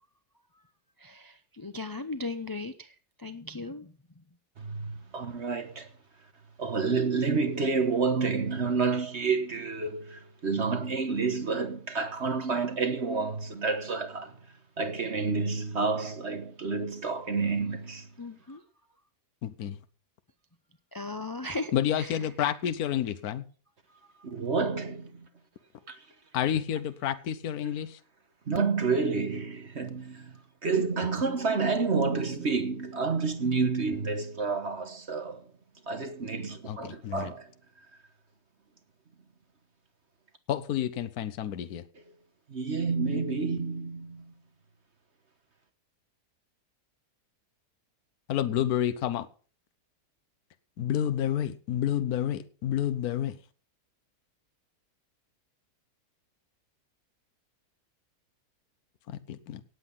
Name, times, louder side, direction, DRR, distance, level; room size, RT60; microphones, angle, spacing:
voice 1, 1.0-3.9 18.2-18.6 20.9-22.2 24.0-24.1, left 2 dB, 20° left, 0.5 m, -37 dB
voice 2, 4.6-5.9 6.6-14.4 14.8-18.1 24.2-25.3 25.9-26.0 27.6-27.8 28.5-30.3 30.6-35.4 35.9-37.5 42.5-44.3, right 4 dB, 45° right, 1.4 m, -29 dB
voice 3, 19.4-19.8 21.7-23.4 26.3-28.0 36.7-37.3 40.5-41.8 48.3-49.3 50.8-53.4 59.1-59.6, left 10 dB, 75° left, 1.3 m, -29 dB
18.0 x 8.1 x 5.6 m
omnidirectional pair, 1.7 m